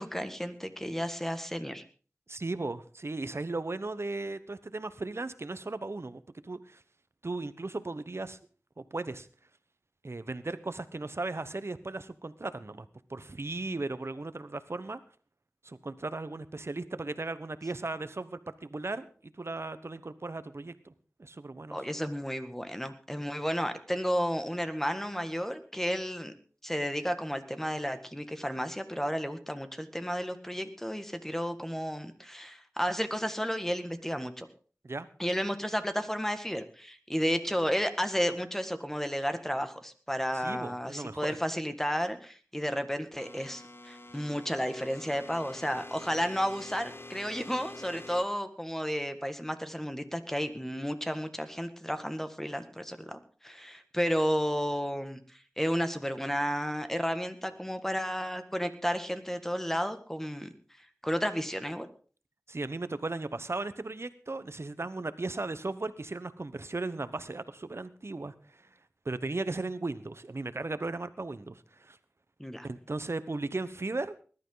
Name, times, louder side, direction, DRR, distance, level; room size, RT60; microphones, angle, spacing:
voice 1, 0.0-1.8 21.7-26.3 26.6-34.5 35.2-60.5 61.0-61.9 72.4-72.7, equal, 5° left, 8 dB, 1.9 m, -32 dB
voice 2, 2.3-6.8 7.2-8.4 8.8-9.3 10.0-15.0 15.6-19.1 19.4-20.9 21.2-21.8 34.8-35.1 40.3-41.4 62.5-68.3 69.0-72.0 72.6-74.2, right 2 dB, 60° right, 13 dB, 1.1 m, -36 dB
sound 1, 43.2-48.2, left 2 dB, 50° left, 1.0 m, -47 dB
20.0 x 12.0 x 4.0 m, 0.40 s
wide cardioid pair, 40°, 5 cm